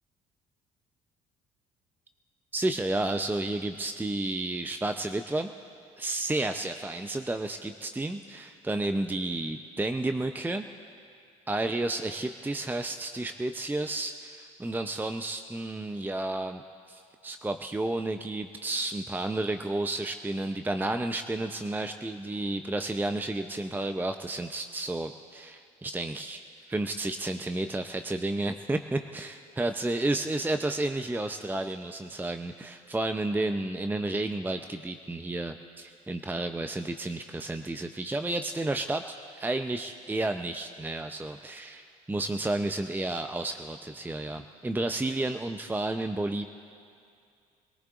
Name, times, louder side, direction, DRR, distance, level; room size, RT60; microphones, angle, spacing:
voice 1, 2.5-5.5 6.0-10.7 11.5-16.6 16.9-26.4 26.7-46.5, right 2 dB, 10° right, 7 dB, 0.7 m, -31 dB
28.5 x 18.5 x 2.5 m, 2.4 s
hypercardioid pair, 55°, 17 cm